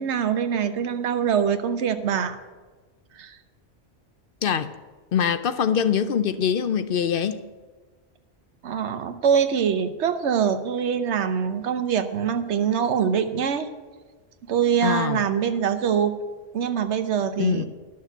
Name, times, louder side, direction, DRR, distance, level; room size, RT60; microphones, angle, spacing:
voice 1, 0.0-2.4 3.2-3.4 8.6-13.7 14.5-16.1 16.5-17.7, right 7 dB, 85° right, 1.1 m, -24 dB
voice 2, 4.4-4.7 5.1-7.4 14.8-15.2 17.4-17.6, left 8 dB, 60° left, 0.7 m, -23 dB
11.5 x 6.5 x 8.0 m
omnidirectional pair, 1.1 m